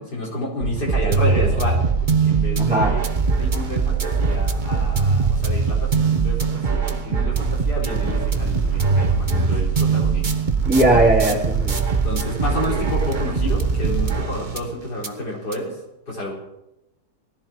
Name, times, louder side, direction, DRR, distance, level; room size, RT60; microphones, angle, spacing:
voice 1, 0.0-3.0 3.4-10.3 12.0-15.8 16.1-16.3, left 1 dB, 90° left, -3 dB, 5.1 m, -30 dB
sound 1, 0.6-14.7 15.0-15.1 15.5-15.6, right 5 dB, 30° right, 1.2 m, -21 dB
voice 2, 2.6-3.0 10.7-11.8, right 1 dB, 5° right, -3 dB, 3.3 m, -18 dB
19.5 x 14.5 x 4.6 m, 0.88 s
omnidirectional pair, 1.7 m